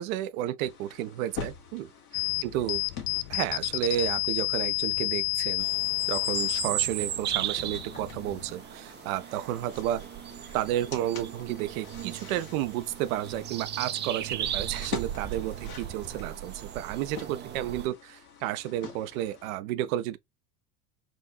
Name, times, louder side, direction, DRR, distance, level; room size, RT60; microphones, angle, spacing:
voice 1, 0.0-2.8 3.3-5.7 6.1-10.0 10.5-20.2, right 12 dB, 65° right, 0.6 m, -32 dB
sound 1, 0.6-4.2 6.3-13.5 14.4-19.5, left 6 dB, 80° left, 1.6 m, -45 dB
sound 2, 2.1-8.5, left 24 dB, 55° left, 0.5 m, -31 dB
sound 3, 5.6-17.9, right 11 dB, 25° right, 0.4 m, -36 dB
6.1 x 2.6 x 2.3 m
hypercardioid pair, 80°, 44 cm